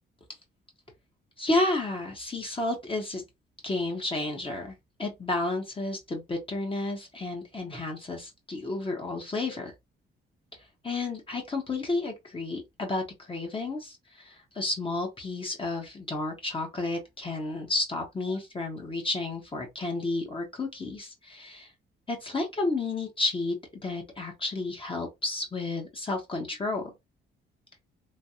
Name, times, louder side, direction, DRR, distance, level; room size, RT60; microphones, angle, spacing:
voice 1, 1.4-3.2 3.6-9.7 10.8-21.7 22.1-23.6 23.8-26.9, left 2 dB, 25° left, 1.0 m, -31 dB
3.2 x 2.3 x 2.7 m
cardioid pair, 90°, 20 cm